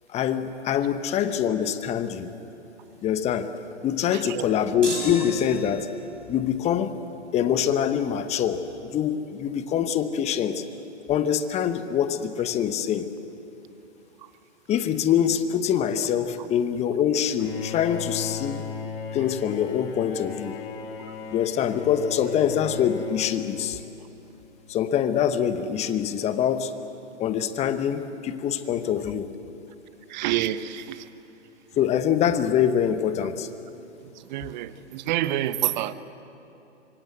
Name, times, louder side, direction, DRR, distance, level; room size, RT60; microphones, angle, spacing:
voice 1, 0.1-2.3 3.0-3.5 3.8-5.9 6.3-7.0 7.3-8.6 8.9-10.6 11.1-13.1 14.7-18.6 19.1-20.6 21.3-23.8 24.7-26.7 27.2-29.3 31.8-33.5, left 9 dB, 20° left, 11 dB, 1.1 m, -24 dB
voice 2, 4.1-4.4 30.1-31.1 34.3-35.9, right 13 dB, 40° right, 14 dB, 1.1 m, -28 dB
sound 1, 4.8-6.1, equal, 90° right, 6.1 m, -34 dB
Bowed string instrument, 17.4-24.2, left 6 dB, 45° left, 2.9 m, -36 dB
25.5 x 23.5 x 8.0 m, 2.9 s
hypercardioid pair, 125°, 36 cm